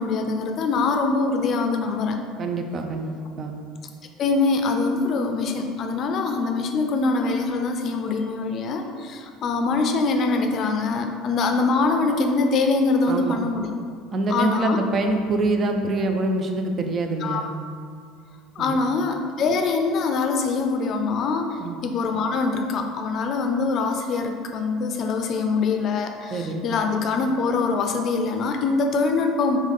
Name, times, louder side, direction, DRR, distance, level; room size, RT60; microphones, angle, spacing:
voice 1, 0.0-2.2 4.2-13.7 14.3-14.8 17.2-17.5 18.6-29.6, left 4 dB, 50° left, 4 dB, 0.5 m, -23 dB
voice 2, 2.4-3.5 13.1-13.4 14.1-17.5 18.6-18.8 21.6-21.8 26.3-26.6, right 2 dB, 40° right, 4 dB, 0.5 m, -25 dB
3.5 x 3.1 x 3.7 m, 2.1 s
supercardioid pair, 85°, 0 cm